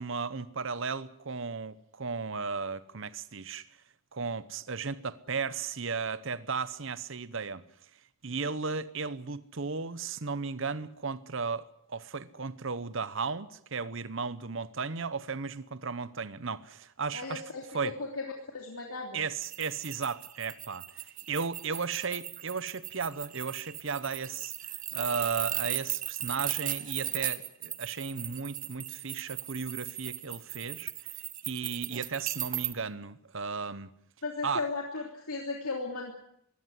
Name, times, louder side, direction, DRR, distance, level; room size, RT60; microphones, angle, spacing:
voice 1, 0.0-3.7 4.1-7.6 8.2-17.4 17.7-17.9 19.1-31.2 31.4-33.9 34.4-34.7, right 5 dB, 60° right, 0.9 m, -35 dB
voice 2, 17.1-18.2 18.5-19.2 34.2-36.1, left 3 dB, 80° left, 3.1 m, -36 dB
sound 1, 19.4-32.7, right 13 dB, 40° right, 1.3 m, -37 dB
22.5 x 17.0 x 9.7 m
head